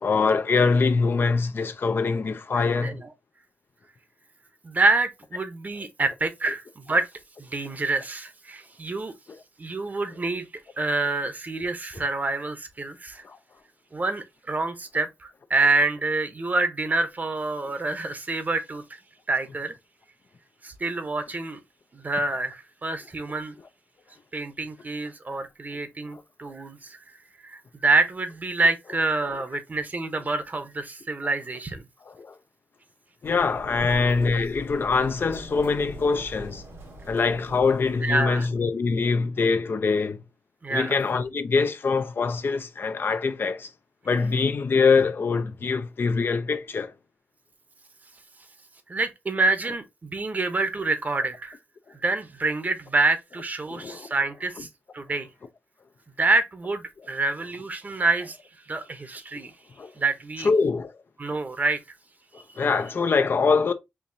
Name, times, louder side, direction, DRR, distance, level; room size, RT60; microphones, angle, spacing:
voice 1, 0.0-3.0 9.3-9.4 13.2-13.4 26.1-26.2 32.1-32.4 33.2-36.6 37.1-40.2 40.7-43.7 44.0-46.9 53.7-54.1 59.8-59.9 60.4-61.0 62.3-63.7, left 4 dB, 55° left, 0.5 m, -24 dB
voice 2, 4.6-7.1 7.4-9.1 9.6-10.5 10.8-13.2 13.9-19.0 19.3-19.7 20.6-21.6 21.9-23.5 24.3-27.0 27.4-31.8 38.0-38.5 40.6-40.9 48.9-51.6 52.0-54.7 54.9-55.3 56.2-58.4 58.7-59.5 60.0-60.5 61.2-61.8, right 3 dB, 40° right, 0.9 m, -27 dB
Sliding door, 33.2-38.3, right 1 dB, 85° right, 1.6 m, -43 dB
4.6 x 2.7 x 2.6 m
cardioid pair, 65°, 4 cm